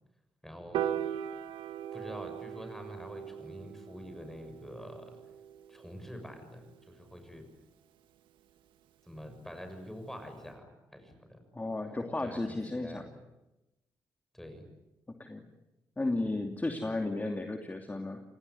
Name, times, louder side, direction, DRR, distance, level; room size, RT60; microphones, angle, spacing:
voice 1, 0.4-0.8 1.9-5.2 5.7-7.4 9.0-11.4 12.2-13.1 14.3-14.6, equal, 5° left, 6 dB, 6.8 m, -46 dB
Piano, 0.7-7.1, right 10 dB, 85° right, 1.7 m, -39 dB
voice 2, 11.5-13.0 15.1-15.4 16.0-18.2, left 2 dB, 20° left, 4 dB, 2.8 m, -34 dB
29.5 x 18.5 x 9.9 m, 0.98 s
cardioid pair, 70°, 8 cm